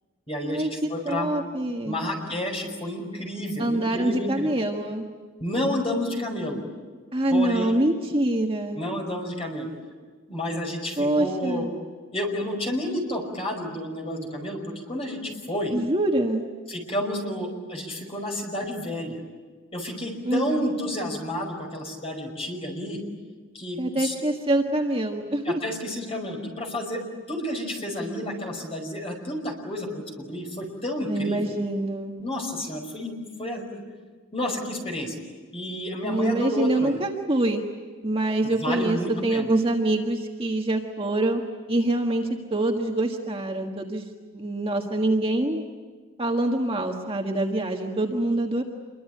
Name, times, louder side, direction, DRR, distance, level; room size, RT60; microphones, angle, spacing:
voice 1, 0.3-1.4 1.9-4.5 5.4-6.6 7.3-7.7 8.7-9.7 10.3-11.7 12.1-15.7 16.7-19.2 19.7-23.0 23.5-24.1 25.4-27.0 27.3-31.5 32.2-33.8 34.3-35.2 35.5-37.0 38.4-39.5, left 1 dB, 25° left, 1 dB, 5.4 m, -30 dB
voice 2, 1.0-2.1 3.6-5.1 7.1-8.8 11.0-11.7 15.7-16.4 20.2-20.7 23.8-25.6 31.0-32.1 36.0-37.6 38.0-41.4 41.7-44.0 44.3-45.6 46.2-48.6, right 1 dB, 25° right, 1 dB, 1.6 m, -25 dB
27.0 x 23.0 x 9.2 m, 1.5 s
head